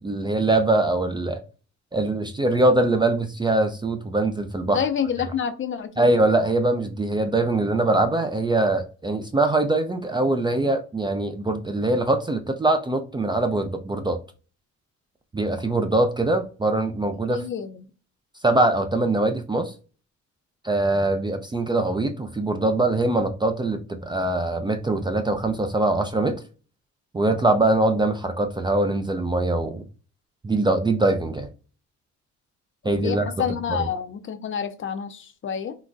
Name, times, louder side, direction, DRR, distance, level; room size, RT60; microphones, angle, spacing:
voice 1, 0.0-1.4 1.9-4.8 6.0-14.2 15.3-17.4 18.4-19.7 20.6-26.4 27.1-29.8 30.4-31.5 32.8-33.3, right 2 dB, 15° right, 0.4 m, -22 dB
voice 2, 4.7-6.1 17.2-17.8 33.0-35.8, left 8 dB, 45° left, 0.5 m, -28 dB
3.9 x 2.2 x 2.5 m
cardioid pair, 90°, 30 cm